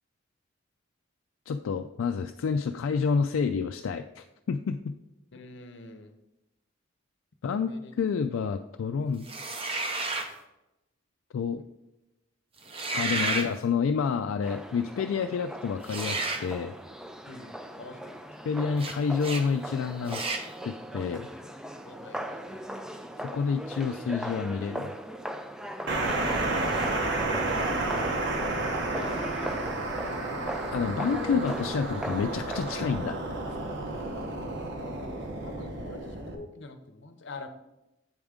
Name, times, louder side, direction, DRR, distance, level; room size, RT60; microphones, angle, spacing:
voice 1, 1.5-4.9 7.4-9.3 11.3-11.6 12.9-16.7 18.4-20.2 20.6-21.3 23.2-25.0 30.7-33.2, left 5 dB, 80° left, 6 dB, 0.3 m, -29 dB
voice 2, 5.3-6.1 7.4-7.9 12.9-13.4 17.3-18.2 21.9-22.9 26.4-26.7 28.7-29.6 35.4-37.5, left 3 dB, 60° left, 7 dB, 0.7 m, -46 dB
sound 1, 9.2-10.3 12.6-13.5 15.8-16.5 18.8-18.9 19.2-19.4 20.1-20.5, right 3 dB, 30° right, 0.7 m, -31 dB
sound 2, 14.4-32.9, equal, 5° right, 0.3 m, -39 dB
sound 3, 25.9-36.3, right 2 dB, 60° right, 1.1 m, -31 dB
8.0 x 3.5 x 5.0 m, 0.93 s
head